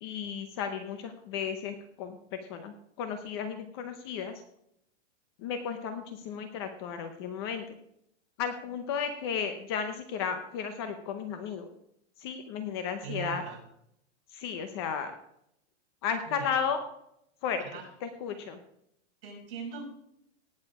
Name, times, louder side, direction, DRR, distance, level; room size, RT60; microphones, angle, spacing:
voice 1, 0.0-4.4 5.4-7.8 8.4-11.7 12.2-13.4 14.3-15.1 16.0-16.8 17.4-17.6 18.0-18.6, left 7 dB, 20° left, 8 dB, 0.7 m, -34 dB
voice 2, 13.0-13.6 16.3-16.5 17.6-17.9 19.2-19.8, right 7 dB, 50° right, -1 dB, 5.9 m, -40 dB
18.0 x 6.6 x 4.8 m, 0.74 s
supercardioid pair, 180°, 35 cm